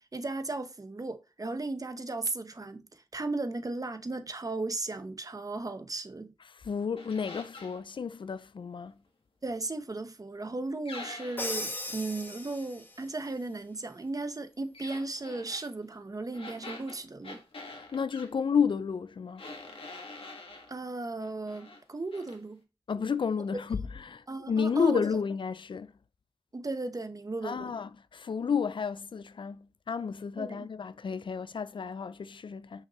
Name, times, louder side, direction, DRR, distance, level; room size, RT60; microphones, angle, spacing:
voice 1, 0.1-6.3 9.4-17.4 20.7-22.6 24.3-25.0 26.5-27.7 30.4-30.7, right 2 dB, 40° right, 0.9 m, -36 dB
voice 2, 6.5-9.0 17.7-19.4 22.9-25.9 27.4-32.9, left 6 dB, 60° left, 0.4 m, -31 dB
sound 1, 7.0-7.8 10.9-11.7 14.7-15.7 16.3-18.3 19.4-20.7 21.2-21.8 22.1-22.4, left 3 dB, 80° left, 1.5 m, -45 dB
Crash cymbal, 11.4-13.0, left 1 dB, 20° left, 1.3 m, -37 dB
5.8 x 5.5 x 3.0 m
wide cardioid pair, 60°, 9 cm